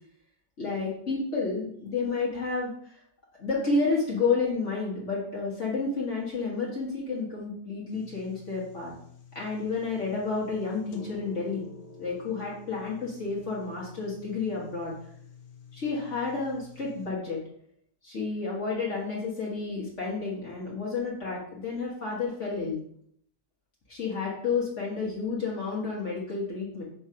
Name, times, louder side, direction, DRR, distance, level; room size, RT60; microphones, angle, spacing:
voice 1, 0.6-3.0 3.4-8.9 9.4-11.7 12.0-14.9 15.7-17.4 18.0-22.8 23.9-26.8, left 4 dB, 40° left, -5 dB, 1.8 m, -30 dB
sound 1, 7.9-17.1, left 5 dB, 85° left, 1.6 m, -50 dB
6.4 x 3.4 x 5.6 m, 0.66 s
omnidirectional pair, 2.0 m